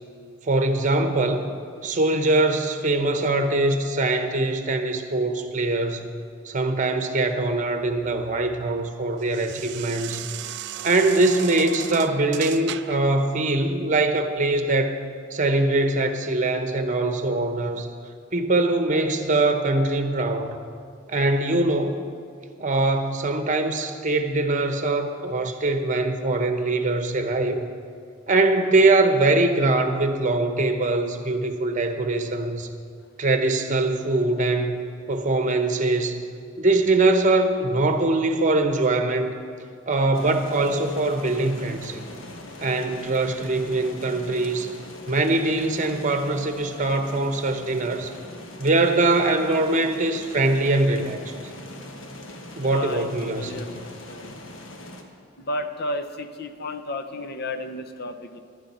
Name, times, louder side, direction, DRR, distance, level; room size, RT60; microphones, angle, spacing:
voice 1, 0.4-1.5 1.8-6.1 6.4-10.3 10.8-15.0 15.3-17.9 18.3-20.6 21.1-22.0 22.6-27.6 28.3-32.7 33.2-34.8 35.1-36.2 36.6-39.3 39.9-42.0 42.6-44.7 45.1-48.1 48.6-51.3 52.6-53.7, right 2 dB, 40° right, 7 dB, 1.0 m, -22 dB
sound 1, 7.7-13.1, right 10 dB, 60° right, 0.4 m, -37 dB
sound 2, 40.1-55.0, left 1 dB, 80° left, 1.3 m, -41 dB
voice 2, 52.6-54.3 55.4-58.4, left 1 dB, 55° left, 9 dB, 0.8 m, -33 dB
15.5 x 11.5 x 4.4 m, 2.3 s
head